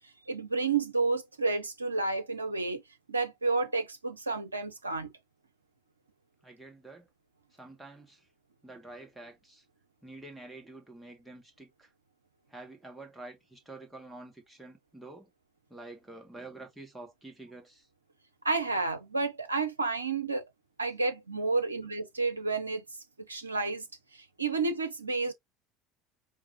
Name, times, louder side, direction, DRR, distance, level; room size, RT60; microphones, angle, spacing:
voice 1, 0.3-2.8 3.1-5.1 18.4-20.5 20.8-22.8 23.3-23.9 24.1-25.3, right 3 dB, 80° right, 0.6 m, -30 dB
voice 2, 6.4-7.1 7.6-8.3 8.6-9.6 10.0-11.9 12.5-15.3 15.7-17.9, right 2 dB, 5° right, 1.8 m, -48 dB
4.7 x 2.8 x 2.7 m
figure-of-eight pair, 65°, 0 cm